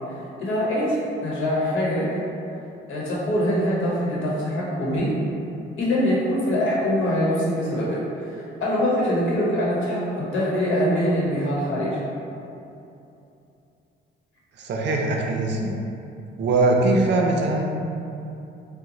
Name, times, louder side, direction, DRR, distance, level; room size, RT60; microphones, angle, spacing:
voice 1, 0.1-2.2 2.9-5.1 5.8-12.0, equal, 80° left, -6 dB, 0.9 m, -24 dB
voice 2, 14.6-15.8 16.4-17.6, right 2 dB, 65° right, 1 dB, 0.5 m, -21 dB
2.9 x 2.1 x 3.7 m, 2.8 s
cardioid pair, 90°, 20 cm